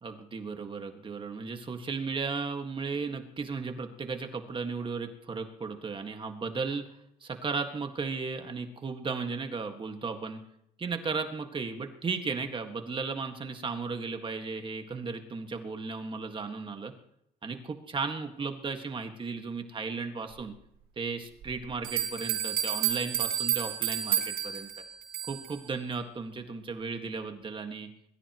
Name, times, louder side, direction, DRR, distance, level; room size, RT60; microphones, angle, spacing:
voice 1, 0.0-6.9 7.2-10.4 10.8-16.9 17.4-20.5 21.0-24.7 25.3-27.9, right 4 dB, 30° right, 5 dB, 1.8 m, -35 dB
sound 1, 21.4-21.5 21.8-25.5, right 11 dB, 70° right, 4.6 m, -30 dB
22.0 x 14.0 x 3.1 m, 0.76 s
cardioid pair, 110°, 17 cm